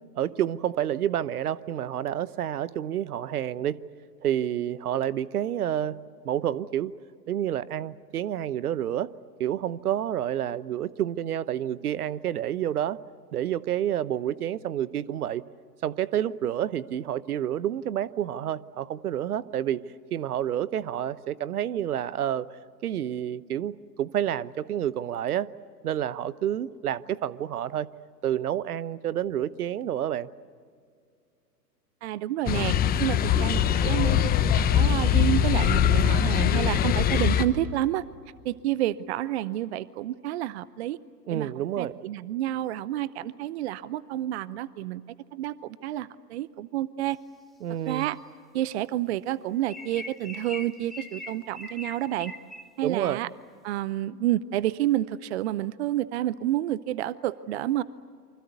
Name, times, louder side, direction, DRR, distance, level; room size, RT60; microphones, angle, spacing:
voice 1, 0.2-3.8 4.2-6.9 7.3-9.1 9.4-13.0 13.3-15.4 15.8-19.8 20.1-22.5 22.8-25.5 25.8-27.9 28.2-30.3 41.3-42.0 47.6-48.1 52.8-53.3, right 10 dB, 65° right, 18 dB, 1.0 m, -29 dB
voice 2, 32.0-34.3 34.6-38.0 38.4-41.0 41.3-41.5 41.8-45.0 45.3-47.2 47.9-48.2 48.5-52.3 52.8-53.3 53.6-57.8, right 13 dB, 40° right, 18 dB, 0.7 m, -29 dB
sound 1, 32.5-37.5, left 9 dB, 20° left, 1.1 m, -22 dB
sound 2, 47.9-48.2 49.7-52.8, left 2 dB, ahead, 2.4 m, -41 dB
28.0 x 25.0 x 8.2 m, 2.1 s
figure-of-eight pair, 115°, 49 cm